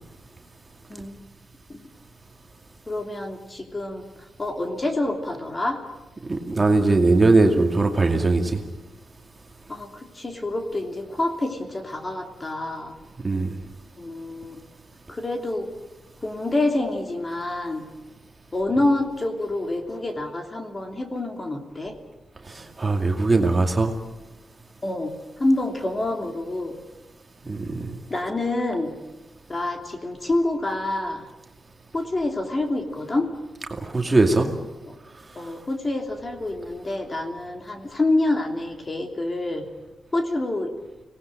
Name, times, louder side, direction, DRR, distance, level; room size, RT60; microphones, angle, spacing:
voice 1, 2.9-4.0 4.4-5.8 9.7-12.9 14.0-14.7 15.1-15.7 16.2-17.9 18.5-21.9 24.8-26.8 28.1-28.9 29.5-31.2 31.9-33.3 34.9-35.0 35.3-39.7 40.1-40.7, left 2 dB, 25° left, 4 dB, 3.0 m, -27 dB
voice 2, 6.3-8.6 13.2-13.6 22.4-23.9 27.4-28.0 33.7-34.5, right 3 dB, 25° right, 3 dB, 2.4 m, -20 dB
25.0 x 19.0 x 9.0 m, 1.1 s
wide cardioid pair, 125°, 0 cm